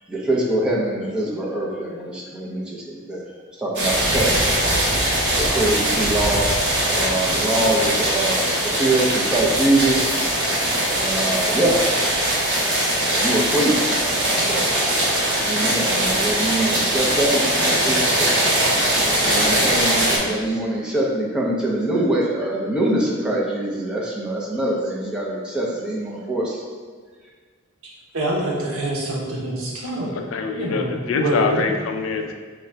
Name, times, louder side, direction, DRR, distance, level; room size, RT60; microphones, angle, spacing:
voice 1, 0.1-3.3 3.6-4.4 4.9-6.5 6.9-10.2 10.6-11.8 12.3-12.4 13.2-13.8 14.3-14.7 15.0-18.0 19.2-26.7, right 1 dB, 5° right, -5 dB, 0.6 m, -24 dB
sound 1, 3.7-20.2, right 1 dB, 55° right, 1.0 m, -21 dB
voice 2, 28.1-30.1 30.5-31.7, right 1 dB, 80° right, -2 dB, 0.9 m, -26 dB
voice 3, 30.3-32.3, left 4 dB, 70° left, 4 dB, 0.4 m, -24 dB
3.7 x 2.2 x 4.4 m, 1.5 s
head